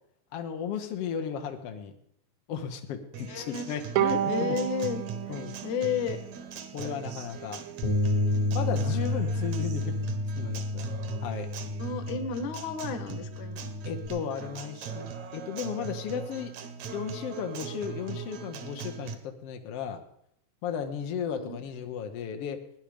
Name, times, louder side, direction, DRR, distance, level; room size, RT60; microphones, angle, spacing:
voice 1, 0.3-1.9 2.5-4.6 5.3-5.6 6.7-7.6 8.3-10.9 11.2-11.5 13.8-16.5 16.9-20.0 20.6-22.6, left 7 dB, 85° left, 5 dB, 1.3 m, -35 dB
Acoustic guitar, 3.1-19.1, right 6 dB, 60° right, 2.0 m, -41 dB
voice 2, 3.3-3.8 4.3-5.0 5.6-6.2 11.8-13.7 21.3-21.6, left 6 dB, 65° left, 8 dB, 2.4 m, -32 dB
Bowed string instrument, 4.0-7.3, right 11 dB, 90° right, 1.6 m, -32 dB
Bass guitar, 7.8-14.1, left 1 dB, 35° left, 0.7 m, -30 dB
17.5 x 10.5 x 5.0 m, 0.74 s
omnidirectional pair, 4.2 m